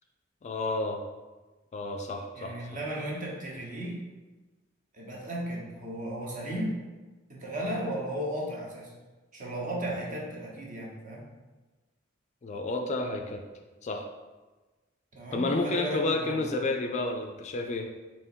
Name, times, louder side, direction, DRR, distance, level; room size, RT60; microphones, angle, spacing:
voice 1, 0.4-1.0 1.7-2.7 12.4-13.4 13.8-14.1 15.3-17.9, left 2 dB, 35° left, 4 dB, 0.3 m, -30 dB
voice 2, 2.3-4.0 4.9-6.8 7.3-8.9 9.3-11.3 15.1-16.5, right 1 dB, 40° right, -3 dB, 0.9 m, -35 dB
3.5 x 2.9 x 4.3 m, 1.2 s
head